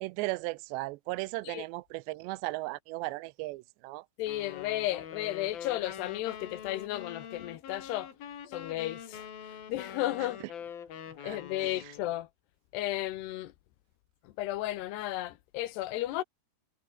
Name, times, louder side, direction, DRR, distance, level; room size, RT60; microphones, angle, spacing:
voice 1, 0.0-4.0 11.2-11.4, right 21 dB, 90° right, 2.9 m, -36 dB
voice 2, 4.2-8.1 8.5-9.3 9.7-10.4 11.2-12.3 12.7-13.5 14.2-16.2, left 15 dB, 75° left, 3.1 m, -34 dB
sound 1, 4.3-12.2, left 8 dB, 60° left, 4.6 m, -44 dB
omnidirectional pair, 4.9 m